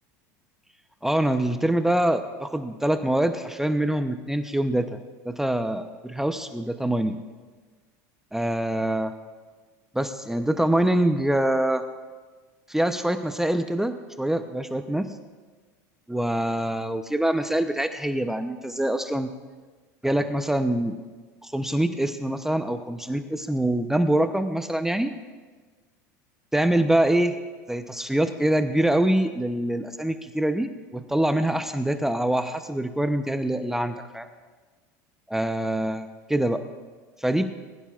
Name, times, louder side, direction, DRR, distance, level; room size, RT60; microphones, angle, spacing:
voice 1, 1.0-7.2 8.3-9.1 9.9-11.8 12.7-15.1 16.1-19.3 20.0-21.0 21.4-25.1 26.5-27.4 27.7-34.3 35.3-36.6 37.2-37.5, right 1 dB, 5° right, 8 dB, 0.7 m, -25 dB
20.5 x 15.5 x 2.4 m, 1.4 s
supercardioid pair, 95°, 9 cm